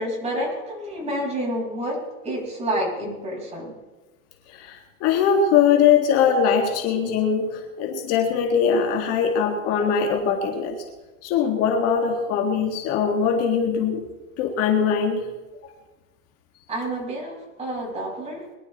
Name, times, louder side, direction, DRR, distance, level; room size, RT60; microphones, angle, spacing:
voice 1, 0.0-2.0 2.2-3.7 16.7-18.5, right 1 dB, 15° right, -2 dB, 5.7 m, -29 dB
voice 2, 4.5-10.8 11.2-14.0 14.4-15.3, left 7 dB, 40° left, 3 dB, 1.9 m, -21 dB
22.5 x 11.5 x 4.2 m, 1.2 s
supercardioid pair, 145°, 38 cm